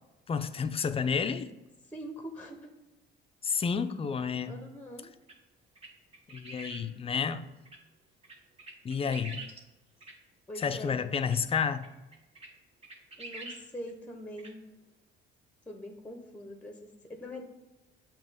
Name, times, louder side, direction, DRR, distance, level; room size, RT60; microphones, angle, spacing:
voice 1, 0.3-1.5 3.4-4.6 6.3-7.4 8.8-9.4 10.6-11.9, left 6 dB, 30° left, 10 dB, 0.5 m, -30 dB
voice 2, 1.9-2.7 4.4-5.1 10.5-11.0 13.2-14.6 15.7-17.4, equal, 5° left, 4 dB, 0.9 m, -43 dB
sound 1, 5.3-5.4 5.7-6.9 7.6-7.8 8.2-9.6 10.0-10.1 10.5-10.7 11.2-11.4 11.8-11.9 12.1-12.5 12.8-13.6 13.9-14.0 14.4-14.5, right 2 dB, 30° right, 1.2 m, -45 dB
7.1 x 2.9 x 5.1 m, 1.1 s
cardioid pair, 85°, 19 cm